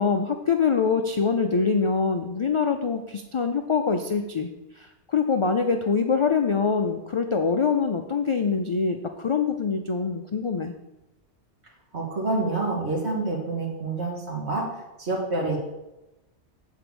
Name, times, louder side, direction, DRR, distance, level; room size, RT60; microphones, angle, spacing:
voice 1, 0.0-4.5 4.8-10.7, left 5 dB, 50° left, 6 dB, 0.3 m, -24 dB
voice 2, 11.9-14.7 15.0-15.6, right 3 dB, 70° right, -3 dB, 2.1 m, -27 dB
8.1 x 4.6 x 6.8 m, 0.99 s
omnidirectional pair, 1.2 m